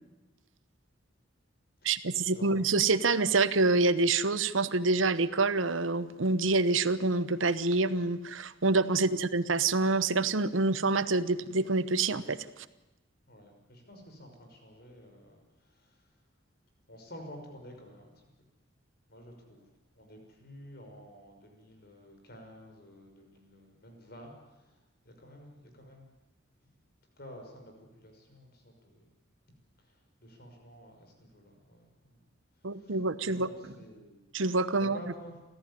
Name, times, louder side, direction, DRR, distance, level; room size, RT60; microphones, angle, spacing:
voice 1, 1.8-12.4 32.6-33.5 34.3-35.0, right 3 dB, 90° right, 14 dB, 1.0 m, -27 dB
voice 2, 13.3-16.0 16.9-18.1 19.1-19.6 19.9-24.8 25.0-26.1 27.2-29.1 29.8-32.2 32.7-33.0 33.3-33.5 33.8-34.2 34.7-35.4, equal, 55° left, 3 dB, 5.9 m, -51 dB
29.5 x 14.5 x 10.0 m, 1.0 s
head